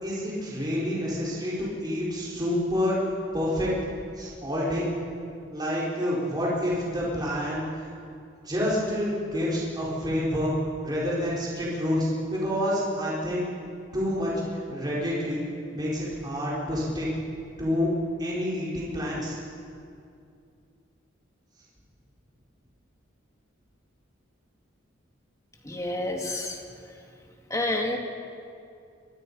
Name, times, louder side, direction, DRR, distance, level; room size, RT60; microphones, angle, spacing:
voice 1, 0.0-3.0 3.3-3.7 4.2-4.9 5.5-7.6 8.4-10.5 10.8-13.4 13.9-15.4 15.7-17.1 17.6-17.9 18.2-19.4, equal, 20° right, -7 dB, 4.6 m, -28 dB
voice 2, 25.6-26.6 27.5-28.0, left 2 dB, 15° left, 2 dB, 2.2 m, -29 dB
25.0 x 23.5 x 5.5 m, 2.4 s
head